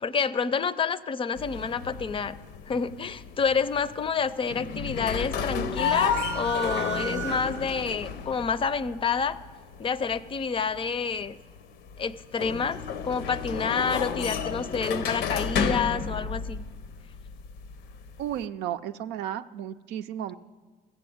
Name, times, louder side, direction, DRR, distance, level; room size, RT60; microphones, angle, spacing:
voice 1, 0.0-2.3 2.7-9.4 9.8-11.4 12.0-16.6, left 5 dB, 30° left, 15 dB, 0.5 m, -28 dB
sound 1, 1.4-18.4, left 6 dB, 85° left, 0.7 m, -32 dB
sound 2, 6.1-7.9, right 10 dB, 20° right, 0.6 m, -36 dB
voice 2, 18.2-20.4, right 10 dB, 90° right, 11 dB, 0.5 m, -33 dB
14.5 x 7.7 x 7.9 m, 1.4 s
cardioid pair, 110°, 17 cm